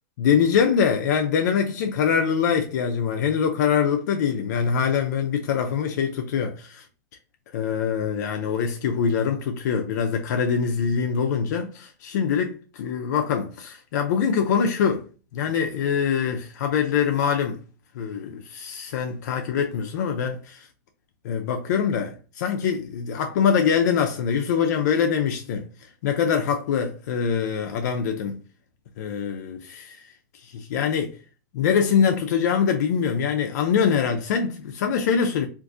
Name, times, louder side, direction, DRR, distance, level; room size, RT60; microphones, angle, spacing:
voice 1, 0.2-6.9 7.5-15.1 15.3-17.6 17.9-20.7 21.2-25.7 26.0-28.4 29.0-30.0 30.4-31.2 31.5-35.5, left 7 dB, 65° left, 0.5 m, -24 dB
3.6 x 2.5 x 2.6 m
supercardioid pair, 170°, 10 cm